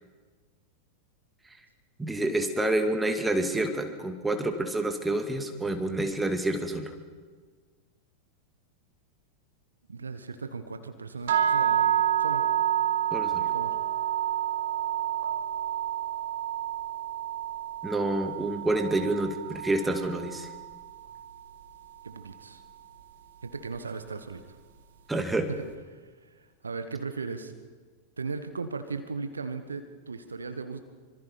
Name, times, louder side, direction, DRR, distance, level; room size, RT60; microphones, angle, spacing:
voice 1, 2.0-6.9 13.1-13.5 17.8-20.5 25.1-25.5, right 2 dB, 10° right, 6 dB, 2.2 m, -28 dB
voice 2, 9.9-11.9 12.2-12.4 13.4-13.8 22.0-22.6 23.4-24.4 25.5-25.6 25.9-26.1 26.6-27.5 28.2-30.8, right 4 dB, 75° right, 9 dB, 1.4 m, -37 dB
sound 1, 11.3-21.4, right 10 dB, 60° right, 1.8 m, -29 dB
25.5 x 24.0 x 5.2 m, 1.5 s
figure-of-eight pair, 90°, 0 cm